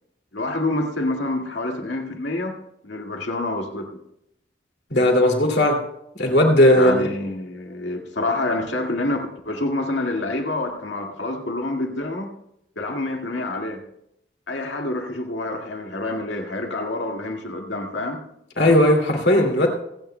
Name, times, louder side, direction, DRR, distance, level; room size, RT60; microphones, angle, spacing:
voice 1, 0.3-2.6 2.8-4.0 6.7-12.3 12.8-13.8 14.5-18.2, left 2 dB, 85° left, 2 dB, 1.9 m, -27 dB
voice 2, 4.9-5.8 6.1-6.9 18.6-19.7, left 1 dB, 65° left, 1 dB, 2.4 m, -17 dB
27.0 x 9.2 x 2.2 m, 0.80 s
head